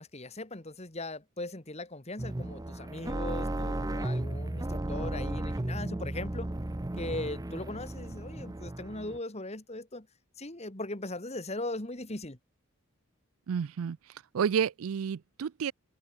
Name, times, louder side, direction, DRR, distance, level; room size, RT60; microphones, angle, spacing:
voice 1, 0.0-6.5 7.0-10.1 10.4-12.4, left 2 dB, 30° left, 2.1 m, -39 dB
sound 1, 2.2-9.2, right 1 dB, 15° right, 0.6 m, -35 dB
voice 2, 13.5-14.0 14.3-15.7, right 7 dB, 80° right, 0.4 m, -30 dB
head